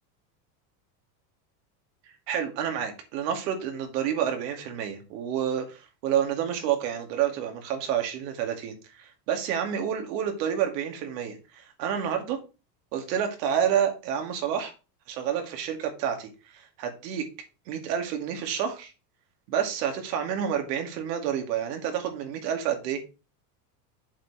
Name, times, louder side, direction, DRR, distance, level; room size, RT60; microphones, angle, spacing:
voice 1, 2.3-12.4 12.9-14.7 15.1-17.3 17.7-18.9 19.5-23.0, right 9 dB, 75° right, 4 dB, 2.5 m, -29 dB
7.4 x 4.8 x 4.9 m, 0.31 s
supercardioid pair, 135°, 50 cm